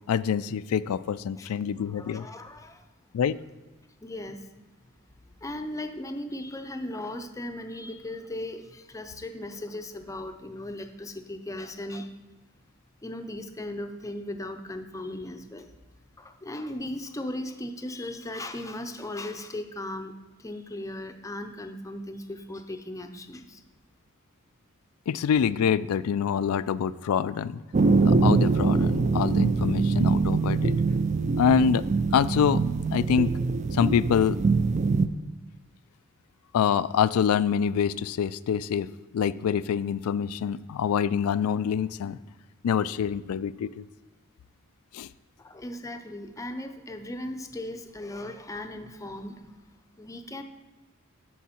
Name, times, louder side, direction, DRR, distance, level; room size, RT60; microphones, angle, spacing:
voice 1, 0.1-2.3 3.1-3.4 25.1-27.6 28.0-30.7 31.4-31.8 32.1-32.6 32.9-33.3 33.7-34.4 36.5-38.9 39.1-42.2 42.6-43.9 44.9-45.1, left 7 dB, 80° left, 17 dB, 0.3 m, -25 dB
voice 2, 1.9-2.9 4.0-4.5 5.2-12.1 13.0-15.7 16.2-23.6 45.4-50.4, left 1 dB, 15° left, 6 dB, 0.6 m, -37 dB
sound 1, 27.7-35.1, right 4 dB, 35° right, 0.4 m, -23 dB
13.0 x 4.7 x 4.3 m, 1.2 s
head